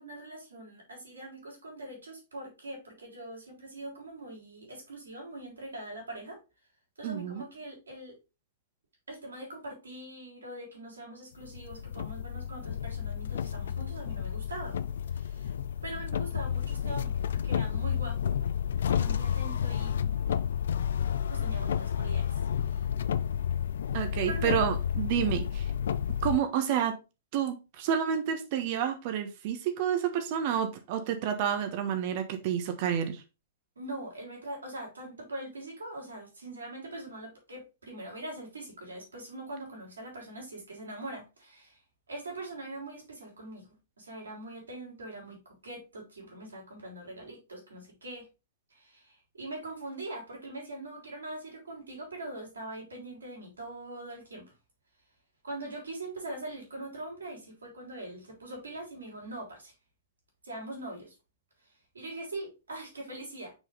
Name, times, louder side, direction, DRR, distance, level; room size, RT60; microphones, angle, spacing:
voice 1, 0.0-6.4 7.0-8.2 9.1-14.8 15.1-15.5 15.8-18.3 18.9-20.1 21.3-22.4 22.6-22.9 24.3-24.7 33.8-41.8 42.1-43.7 44.0-48.3 48.7-54.5 55.4-59.7 60.4-61.1 61.9-63.5, right 1 dB, 75° right, 3.8 m, -42 dB
voice 2, 7.0-7.4 23.9-25.7 26.2-26.9 27.3-33.2, right 9 dB, 45° right, 1.3 m, -29 dB
sound 1, 11.4-26.4, left 8 dB, 60° left, 0.4 m, -31 dB
6.2 x 4.9 x 3.9 m
figure-of-eight pair, 105°, 0 cm